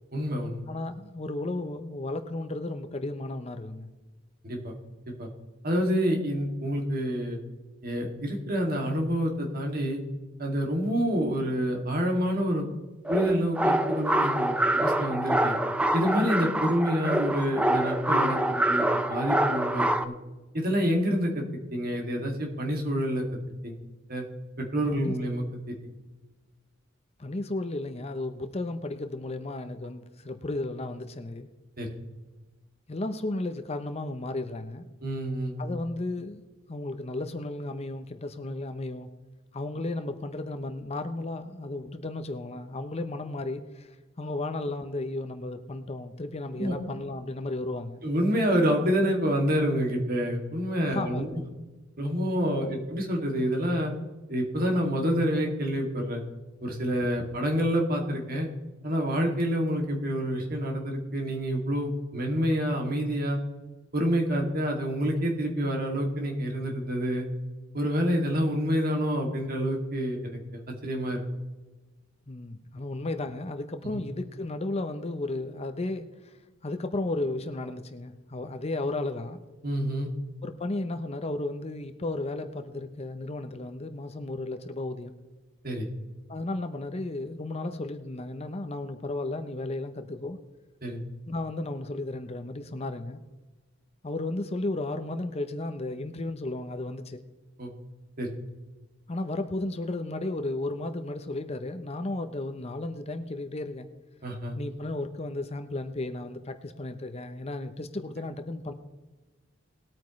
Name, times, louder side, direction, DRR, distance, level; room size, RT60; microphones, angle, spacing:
voice 1, 0.1-0.6 4.4-4.7 5.2-5.3 5.6-7.4 7.8-10.0 10.4-12.7 13.1-15.5 15.9-20.1 20.5-21.4 21.7-23.2 23.6-23.7 24.1-24.2 24.6-25.7 31.8-31.9 35.0-35.8 46.6-46.7 48.0-51.3 52.0-53.9 54.3-56.2 56.6-58.5 58.8-63.4 63.9-67.3 67.7-70.4 70.8-71.2 79.6-80.1 85.6-85.9 90.8-91.0 97.6-97.7 98.2-98.3 104.2-104.6, equal, 50° right, 1 dB, 2.4 m, -27 dB
voice 2, 0.7-3.9 24.9-25.2 27.2-31.5 32.9-34.8 35.6-36.4 36.7-39.1 39.5-48.0 50.8-51.4 52.6-52.8 72.3-76.3 76.6-79.4 80.4-85.1 86.3-90.4 91.3-93.2 94.0-97.2 99.1-103.9 104.6-108.7, left 2 dB, 30° left, 8 dB, 0.7 m, -34 dB
sound 1, 13.0-20.0, right 1 dB, 5° right, 0.5 m, -26 dB
20.0 x 8.9 x 3.2 m, 1.2 s
head